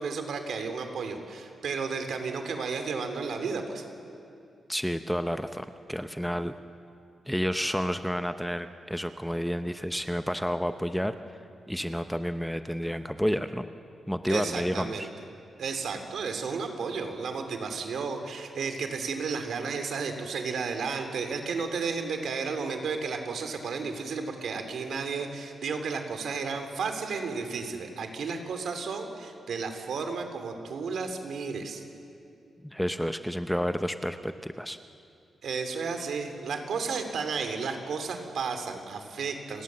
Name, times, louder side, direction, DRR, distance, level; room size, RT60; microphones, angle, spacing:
voice 1, 0.0-3.8 14.3-15.1 15.6-31.8 35.4-39.6, right 5 dB, 70° right, 6 dB, 3.0 m, -33 dB
voice 2, 4.7-6.6 7.3-11.1 11.7-13.7 14.1-15.1 32.6-34.8, equal, ahead, 9 dB, 0.7 m, -30 dB
30.0 x 19.0 x 7.6 m, 2.5 s
wide cardioid pair, 135°, 0 cm